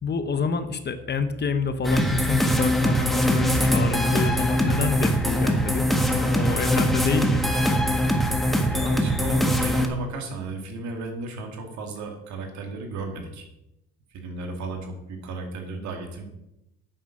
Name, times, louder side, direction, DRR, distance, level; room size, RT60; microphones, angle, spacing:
voice 1, 0.0-5.9 6.1-7.6, left 4 dB, 35° left, 10 dB, 1.1 m, -27 dB
sound 1, 1.8-9.9, equal, ahead, 1.5 m, -22 dB
voice 2, 8.7-13.5 14.1-16.2, right 3 dB, 70° right, 4 dB, 2.3 m, -34 dB
9.0 x 6.7 x 5.9 m, 0.89 s
supercardioid pair, 85°, 30 cm